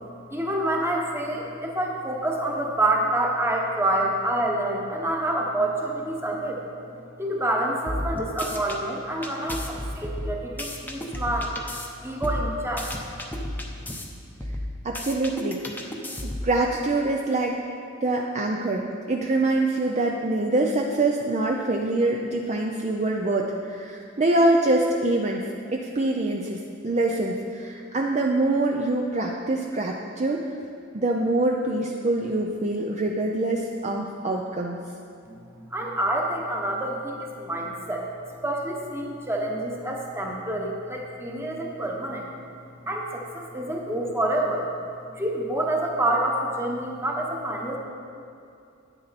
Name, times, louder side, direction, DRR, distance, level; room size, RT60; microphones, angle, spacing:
voice 1, 0.3-6.6 6.9-11.6 12.0-12.9 35.3-38.1 38.4-42.3 42.8-44.7 45.1-47.8, right 1 dB, 10° right, 0 dB, 1.1 m, -27 dB
sound 1, 7.9-8.8 9.2-11.9 12.2-14.0 14.4-16.5, left 1 dB, 10° left, 0.8 m, -32 dB
voice 2, 14.8-15.6 16.2-17.6 18.0-25.4 25.7-30.6 30.9-34.8, right 2 dB, 35° right, 0 dB, 0.5 m, -25 dB
9.9 x 9.3 x 4.1 m, 2.5 s
head